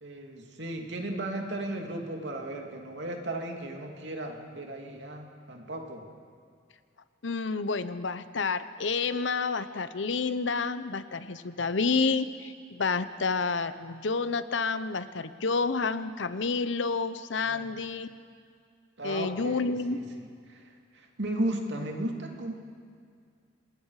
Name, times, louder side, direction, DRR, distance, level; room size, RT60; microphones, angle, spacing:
voice 1, 0.0-6.1 17.4-17.7 19.0-22.5, right 1 dB, 70° right, 2 dB, 2.6 m, -35 dB
voice 2, 7.2-18.1 19.0-20.0, left 4 dB, 85° left, 13 dB, 0.8 m, -29 dB
26.5 x 20.0 x 4.9 m, 2.2 s
head